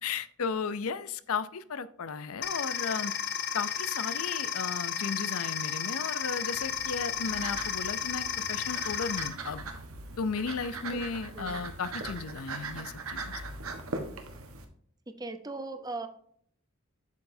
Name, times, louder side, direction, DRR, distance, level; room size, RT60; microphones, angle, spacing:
voice 1, 0.0-3.1 3.5-9.6 10.2-13.4, left 5 dB, 85° left, 15 dB, 0.6 m, -35 dB
sound 1, 2.4-9.3, left 8 dB, 50° left, 0.8 m, -33 dB
sound 2, 6.2-14.6, right 3 dB, 80° right, 1.3 m, -40 dB
voice 2, 15.1-16.1, right 2 dB, 20° right, 9 dB, 0.7 m, -38 dB
8.3 x 6.7 x 2.7 m, 0.63 s
head